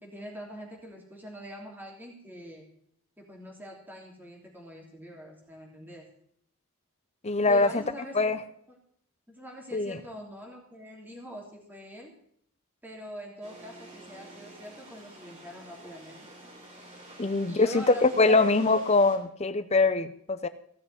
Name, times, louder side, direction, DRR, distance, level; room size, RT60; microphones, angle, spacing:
voice 1, 0.0-2.7 3.2-6.1 7.5-8.3 8.7-8.8 9.3-12.1 12.8-16.3 17.5-18.5, equal, 10° right, -1 dB, 3.3 m, -44 dB
voice 2, 7.2-7.8 8.1-8.4 9.7-10.0 17.2-20.5, left 3 dB, 30° left, 12 dB, 0.7 m, -23 dB
sound 1, 13.4-19.2, right 1 dB, 35° right, 3.8 m, -49 dB
16.5 x 6.6 x 9.6 m, 0.66 s
head